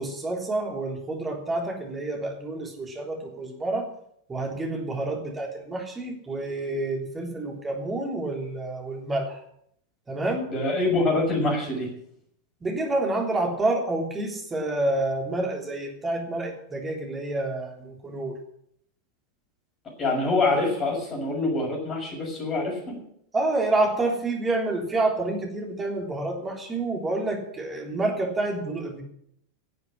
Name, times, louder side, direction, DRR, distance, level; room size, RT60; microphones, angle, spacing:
voice 1, 0.0-3.9 4.3-9.4 10.1-10.5 12.6-18.3 23.3-29.0, right 2 dB, 15° right, 1 dB, 3.5 m, -28 dB
voice 2, 10.5-11.9 20.0-23.0, left 2 dB, 25° left, 0 dB, 6.4 m, -25 dB
12.0 x 7.9 x 9.9 m, 0.70 s
figure-of-eight pair, 90°, 0 cm